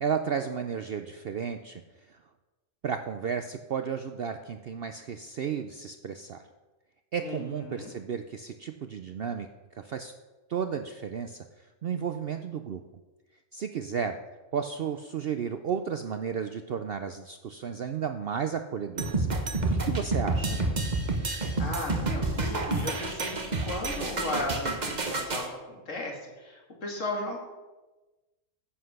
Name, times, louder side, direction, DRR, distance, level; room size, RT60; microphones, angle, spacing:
voice 1, 0.0-1.8 2.1-2.2 2.8-6.4 7.1-9.5 9.7-10.1 10.5-11.4 11.8-12.8 13.5-14.2 14.5-19.3 19.7-20.6, right 7 dB, 60° right, 8 dB, 0.6 m, -33 dB
voice 2, 7.2-7.9 20.3-20.8 21.3-27.4, left 2 dB, 60° left, 0 dB, 2.7 m, -36 dB
sound 1, 19.0-25.5, right 2 dB, 35° right, 1.2 m, -29 dB
10.0 x 7.9 x 6.5 m, 1.2 s
omnidirectional pair, 1.5 m